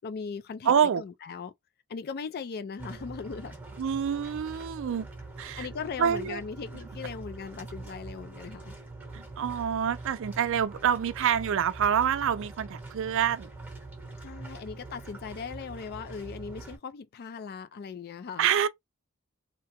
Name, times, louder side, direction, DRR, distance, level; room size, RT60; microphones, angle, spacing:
voice 1, 0.0-1.5 1.9-3.5 5.6-8.8 14.2-18.5, left 5 dB, 45° left, 0.4 m, -39 dB
voice 2, 0.7-1.0 3.8-5.1 5.4-5.7 6.0-6.4 9.1-13.5 18.4-18.7, right 8 dB, 60° right, 0.4 m, -26 dB
sound 1, 2.8-16.8, right 2 dB, 5° right, 0.9 m, -44 dB
2.8 x 2.2 x 2.8 m
head